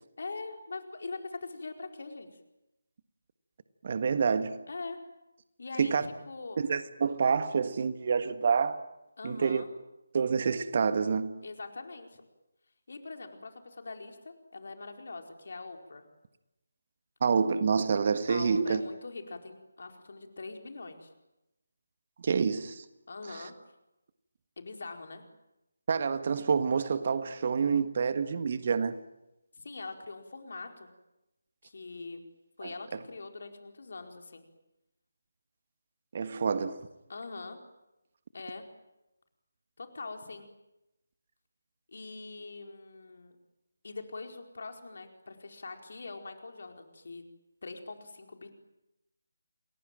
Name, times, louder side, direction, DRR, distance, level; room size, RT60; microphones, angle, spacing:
voice 1, 0.2-2.3 4.7-5.0 5.6-5.9 6.3-6.6 9.2-9.7 11.4-12.2 12.9-16.0 18.3-21.1 23.1-23.5 24.6-25.2 29.5-30.9 31.6-32.2 32.6-34.4 37.1-37.6 38.3-38.6 39.8-40.5 41.9-43.4 43.8-47.2 47.6-48.5, left 3 dB, 55° left, 4.6 m, -42 dB
voice 2, 3.8-4.6 5.8-6.0 6.6-8.8 9.2-9.6 10.1-11.4 17.2-18.8 22.2-22.8 23.3-23.4 25.9-29.0 32.6-32.7 36.1-36.8, right 5 dB, 40° right, 1.6 m, -27 dB
29.0 x 21.5 x 9.1 m
figure-of-eight pair, 155°, 0 cm